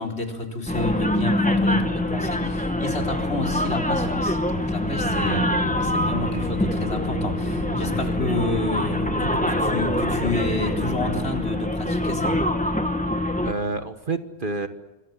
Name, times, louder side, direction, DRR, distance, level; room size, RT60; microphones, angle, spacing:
voice 1, 0.0-5.5 5.8-12.4, left 2 dB, 50° left, 2 dB, 4.4 m, -30 dB
sound 1, 0.7-13.5, left 1 dB, 5° left, 1.9 m, -25 dB
sound 2, 4.8-11.2, left 1 dB, 30° left, 7.9 m, -32 dB
voice 2, 5.2-5.5 7.9-8.2 13.4-14.7, right 3 dB, 40° right, 9 dB, 1.4 m, -30 dB
27.0 x 25.0 x 7.5 m, 1.1 s
omnidirectional pair, 1.4 m